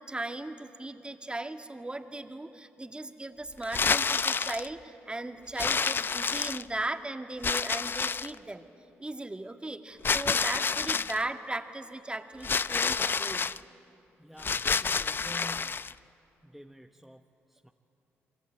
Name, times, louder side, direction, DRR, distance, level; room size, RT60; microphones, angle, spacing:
voice 1, 0.0-8.7 9.0-13.5, right 2 dB, 20° right, 7 dB, 2.0 m, -37 dB
sound 1, 3.6-4.7 5.6-6.9 7.4-8.4 10.0-11.2 12.4-13.6 14.4-15.9, left 5 dB, 40° left, 0.6 m, -28 dB
voice 2, 14.2-16.1 16.4-17.7, equal, 5° right, 4 dB, 1.2 m, -49 dB
28.0 x 23.5 x 8.9 m, 2.9 s
supercardioid pair, 50°, 5 cm